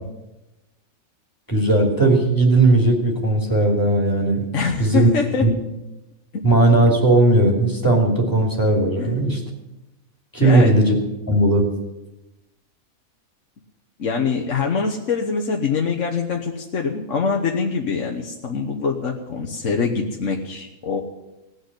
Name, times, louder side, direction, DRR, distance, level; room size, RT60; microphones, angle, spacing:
voice 1, 1.5-4.4 4.8-5.1 5.4-5.5 6.4-9.4 10.3-10.9 11.3-11.6, right 2 dB, 15° left, 0 dB, 3.0 m, -17 dB
voice 2, 4.5-5.5 6.3-6.4 9.0-9.1 10.4-10.7 14.0-21.0, left 5 dB, 65° left, 1 dB, 1.5 m, -24 dB
18.0 x 6.8 x 9.7 m, 0.97 s
omnidirectional pair, 1.4 m